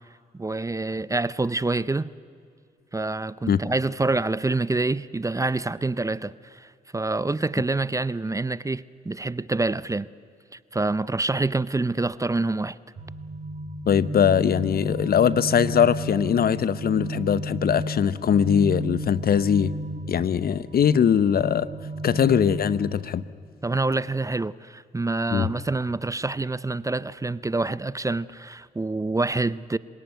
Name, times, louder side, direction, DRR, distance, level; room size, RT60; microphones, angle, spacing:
voice 1, 0.3-2.1 2.9-10.1 10.5-12.8 23.6-29.8, right 2 dB, 15° right, 0.6 m, -26 dB
sound 1, 13.0-23.0, right 1 dB, 50° right, 4.5 m, -33 dB
voice 2, 13.9-19.7 20.1-21.7 22.0-23.2 25.3-25.5, left 8 dB, 55° left, 0.9 m, -21 dB
26.5 x 17.5 x 9.2 m
supercardioid pair, 55°, 19 cm